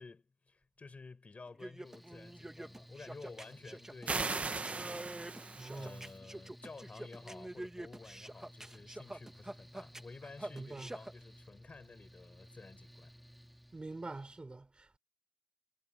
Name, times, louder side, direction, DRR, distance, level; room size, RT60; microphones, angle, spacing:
voice 1, 0.0-13.1, left 4 dB, 70° left, 7.1 m, -53 dB
sound 1, 1.5-11.1, right 1 dB, 20° right, 1.7 m, -46 dB
Mechanical fan, 1.8-14.4, equal, ahead, 2.4 m, -57 dB
sound 2, 4.1-6.1, right 3 dB, 70° right, 1.5 m, -38 dB
voice 2, 5.5-6.1 10.5-10.9 13.7-15.0, right 2 dB, 45° right, 4.1 m, -45 dB
wide cardioid pair, 75°, 2 cm